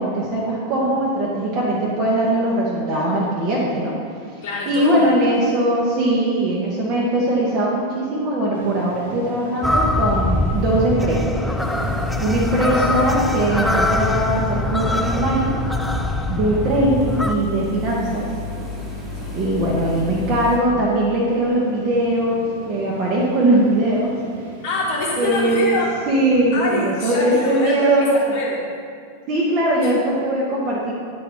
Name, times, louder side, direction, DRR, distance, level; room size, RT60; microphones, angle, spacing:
voice 1, 0.0-3.9 4.7-11.3 12.2-15.5 16.3-18.3 19.3-24.2 25.2-25.6 26.1-28.1 29.3-30.9, right 1 dB, 40° right, -5 dB, 1.1 m, -20 dB
voice 2, 4.4-5.0 5.4-5.5 19.2-19.5 24.6-25.9 26.5-28.6 29.8-29.9, left 2 dB, 55° left, -6 dB, 1.1 m, -26 dB
sound 1, 8.5-26.5, right 2 dB, 65° right, 1.0 m, -37 dB
sound 2, 9.6-17.3, left 1 dB, 5° left, 0.3 m, -23 dB
sound 3, 11.6-20.6, left 4 dB, 15° right, 1.4 m, -31 dB
8.7 x 4.1 x 4.4 m, 2.1 s
figure-of-eight pair, 90°, 0 cm